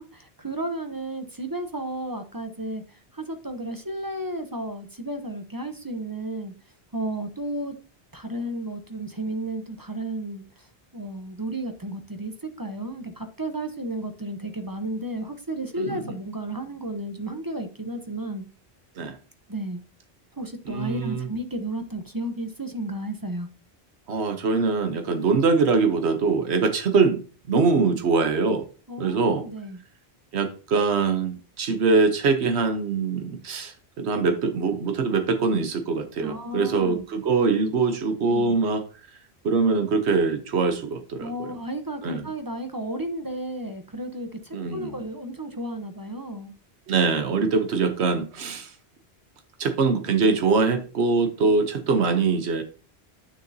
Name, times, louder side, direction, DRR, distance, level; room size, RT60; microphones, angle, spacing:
voice 1, 0.0-2.8 3.1-6.5 6.9-7.7 8.1-10.4 10.9-18.4 19.5-19.8 20.4-23.5 28.9-29.8 36.2-37.0 38.3-38.5 41.2-46.5, right 1 dB, 20° right, 7 dB, 0.8 m, -33 dB
voice 2, 15.8-16.1 19.0-19.2 20.7-21.3 24.1-27.2 27.5-28.6 29.0-29.4 30.3-38.8 39.4-41.5 42.0-42.3 44.5-45.0 46.9-48.7 49.6-52.6, right 4 dB, 90° right, 7 dB, 1.2 m, -23 dB
9.6 x 6.6 x 2.7 m, 0.35 s
omnidirectional pair, 1.1 m